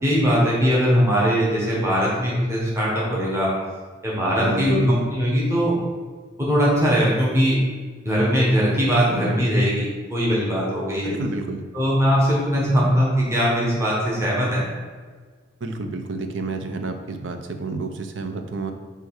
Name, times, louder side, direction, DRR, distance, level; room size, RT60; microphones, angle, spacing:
voice 1, 0.0-3.5 4.0-5.7 6.4-7.6 8.0-11.1 11.7-14.6, equal, 15° right, -6 dB, 1.3 m, -20 dB
voice 2, 4.4-5.0 11.0-11.6 15.6-18.7, right 3 dB, 80° right, 6 dB, 0.7 m, -29 dB
6.3 x 3.3 x 4.8 m, 1.5 s
head